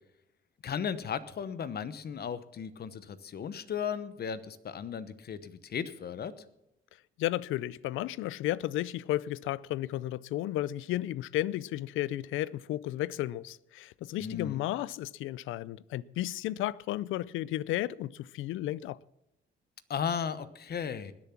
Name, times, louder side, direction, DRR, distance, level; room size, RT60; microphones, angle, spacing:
voice 1, 0.6-6.3 14.2-14.6 19.9-21.1, left 7 dB, 55° left, 1.0 m, -35 dB
voice 2, 7.2-19.0, left 14 dB, 85° left, 0.5 m, -33 dB
20.0 x 7.1 x 5.9 m
cardioid pair, 90°, 20 cm